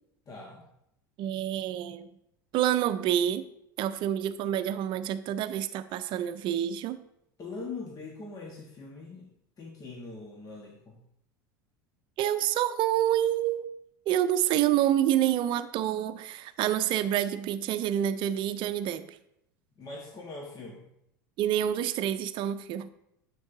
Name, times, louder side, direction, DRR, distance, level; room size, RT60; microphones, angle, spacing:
voice 1, 0.3-0.6 7.4-11.0 19.8-20.9, left 3 dB, 35° left, 0 dB, 1.4 m, -42 dB
voice 2, 1.2-2.1 2.5-3.4 3.8-7.0 12.2-13.7 14.1-19.2 21.4-22.9, right 11 dB, 50° right, 11 dB, 0.6 m, -27 dB
9.4 x 7.5 x 2.7 m, 0.78 s
hypercardioid pair, 85°, 11 cm